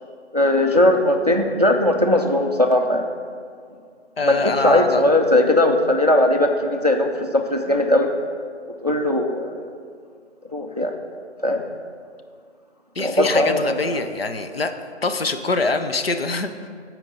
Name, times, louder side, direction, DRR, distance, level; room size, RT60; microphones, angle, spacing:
voice 1, 0.3-3.0 4.2-8.1 8.8-9.6 10.5-10.9 11.4-11.6 13.0-14.0, left 1 dB, 35° right, 4 dB, 0.4 m, -19 dB
voice 2, 4.2-5.0 13.0-14.7 15.0-16.7, left 3 dB, 55° left, 7 dB, 0.6 m, -24 dB
12.5 x 4.5 x 4.0 m, 2.1 s
figure-of-eight pair, 160°, 35 cm